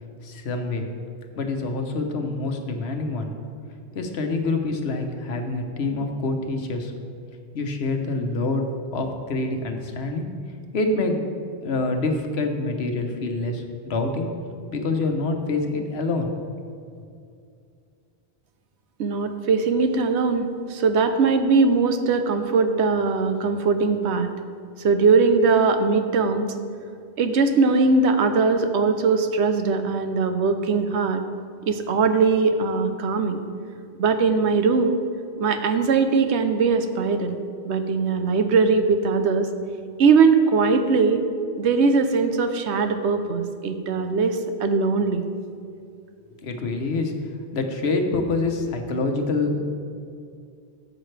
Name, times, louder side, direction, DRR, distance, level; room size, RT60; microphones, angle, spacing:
voice 1, 0.2-0.8 1.4-3.3 3.9-6.9 7.5-8.7 8.9-10.3 10.7-11.2 11.6-14.3 14.7-16.3 46.4-47.1 47.5-49.7, left 3 dB, 70° left, 4 dB, 1.2 m, -26 dB
voice 2, 19.0-24.3 24.8-26.5 27.2-31.2 31.7-33.4 34.0-35.0 35.4-37.4 37.6-39.5 40.0-41.2 41.6-45.2, right 4 dB, 80° right, 8 dB, 1.0 m, -20 dB
13.0 x 7.4 x 3.3 m, 2.4 s
omnidirectional pair, 1.1 m